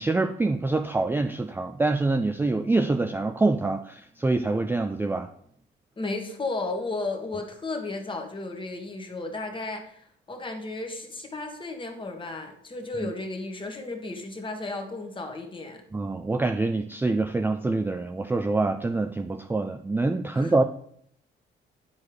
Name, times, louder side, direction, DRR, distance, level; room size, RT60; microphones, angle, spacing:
voice 1, 0.0-5.3 13.0-13.1 15.9-20.6, right 3 dB, 10° right, 7 dB, 0.3 m, -25 dB
voice 2, 6.0-15.8 20.3-20.5, left 3 dB, 25° left, 3 dB, 1.3 m, -34 dB
9.7 x 4.6 x 3.1 m, 0.65 s
cardioid pair, 90°, 20 cm